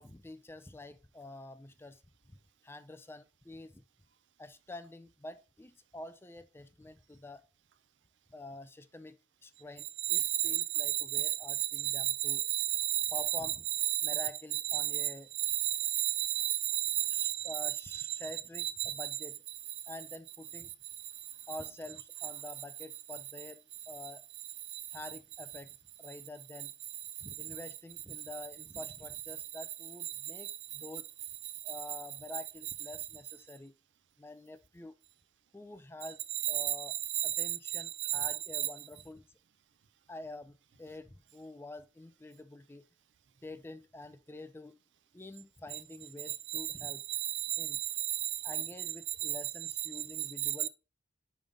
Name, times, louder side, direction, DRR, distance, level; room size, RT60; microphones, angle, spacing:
voice 1, 0.0-2.0 2.3-2.4 2.6-3.8 4.4-7.4 8.3-9.2 9.4-12.4 13.1-13.7 14.0-15.3 17.1-19.4 19.9-20.7 21.5-24.2 24.9-26.7 27.2-31.1 31.6-33.7 34.2-34.9 35.5-36.2 36.5-37.0 37.2-39.3 40.1-42.8 43.4-44.8 45.1-47.0 47.6-47.8 48.4-50.7, left 2 dB, 15° left, 0.4 m, -47 dB
voice 2, 10.0-13.1 13.9-14.2 14.7-18.0 18.6-19.1 21.2-21.3 24.7-24.8 30.4-30.6 31.7-31.8 36.4-38.1 38.5-38.7 46.3-48.5 49.2-49.4 50.4-50.7, right 14 dB, 85° right, 0.6 m, -33 dB
5.3 x 5.2 x 3.9 m
head